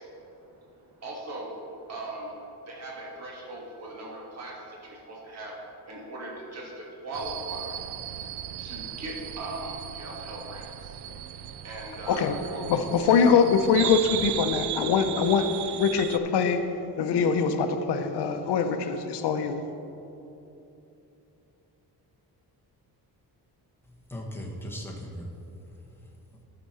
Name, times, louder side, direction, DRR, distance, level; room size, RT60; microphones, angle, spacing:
voice 1, 0.0-2.3 2.6-12.2 12.5-12.7, right 2 dB, 40° right, -3 dB, 1.6 m, -40 dB
sound 1, 7.1-16.2, right 11 dB, 75° right, 0.5 m, -36 dB
voice 2, 12.7-16.6 17.0-19.6, left 6 dB, 80° left, 7 dB, 0.7 m, -23 dB
voice 3, 23.8-26.4, equal, 5° left, -2 dB, 1.0 m, -40 dB
13.0 x 5.9 x 4.2 m, 2.9 s
wide cardioid pair, 175°, 40 cm